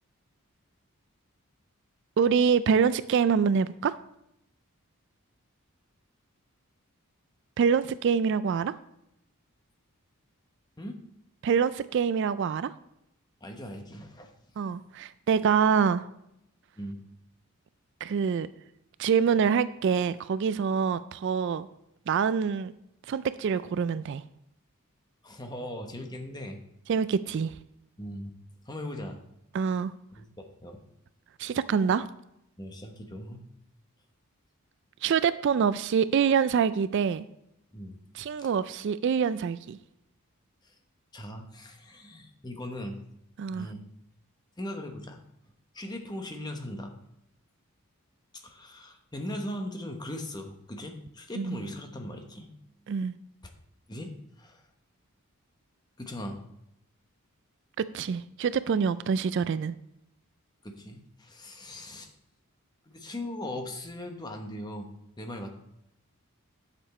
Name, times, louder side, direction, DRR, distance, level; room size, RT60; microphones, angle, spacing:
voice 1, 2.2-3.9 7.6-8.7 11.4-12.7 14.6-16.1 18.0-18.5 19.0-21.7 22.1-22.7 23.1-24.2 26.9-27.5 29.5-29.9 31.4-32.1 35.0-37.3 38.1-39.8 43.4-43.7 51.4-51.6 52.9-53.1 57.9-59.8, right 6 dB, 55° right, 15 dB, 0.3 m, -25 dB
voice 2, 13.4-14.3 14.7-14.8 16.8-17.0 25.2-26.6 28.0-28.3 28.7-29.2 30.1-30.8 32.6-33.4 37.7-38.0 40.6-40.8 41.1-43.0 43.5-43.8 44.6-45.2 45.7-46.9 48.3-52.5 53.9-54.1 54.4-54.6 56.0-56.4 60.6-62.1 62.9-64.9 65.2-65.5, left 1 dB, 20° left, 4 dB, 1.0 m, -39 dB
10.0 x 6.9 x 4.2 m, 0.80 s
head